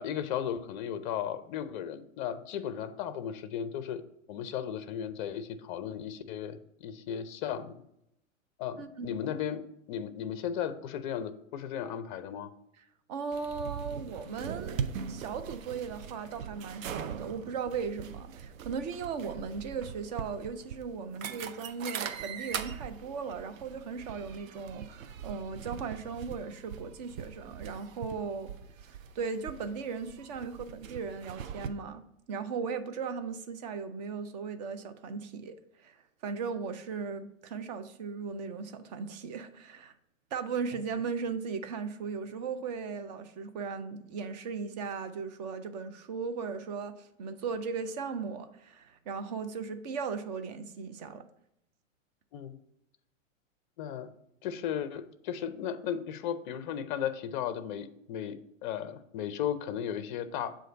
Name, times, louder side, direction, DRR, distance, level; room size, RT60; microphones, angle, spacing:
voice 1, 0.0-4.0 4.3-7.8 8.6-9.6 9.9-12.5 52.3-52.6 53.8-54.1 54.4-60.6, left 9 dB, 40° left, 0.5 m, -35 dB
voice 2, 8.8-9.1 13.1-28.5 28.9-35.6 35.8-36.0 36.2-39.9 40.3-51.2, right 5 dB, 35° right, 0.4 m, -37 dB
sound 1, 13.3-31.7, right 7 dB, 75° right, 0.6 m, -41 dB
7.5 x 2.5 x 5.1 m
hypercardioid pair, 130°, 40 cm